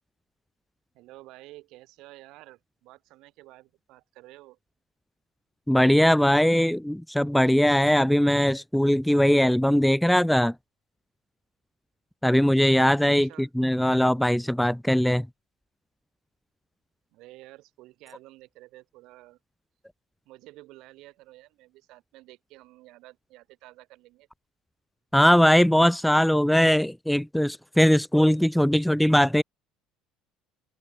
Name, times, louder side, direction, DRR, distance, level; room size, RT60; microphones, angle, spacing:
voice 1, 0.9-4.6 13.2-13.5 17.1-19.4 20.3-24.3, right 19 dB, 70° right, 5.2 m, -50 dB
voice 2, 5.7-10.5 12.2-15.3 25.1-29.4, equal, ahead, 0.5 m, -20 dB
supercardioid pair, 90°, 0 cm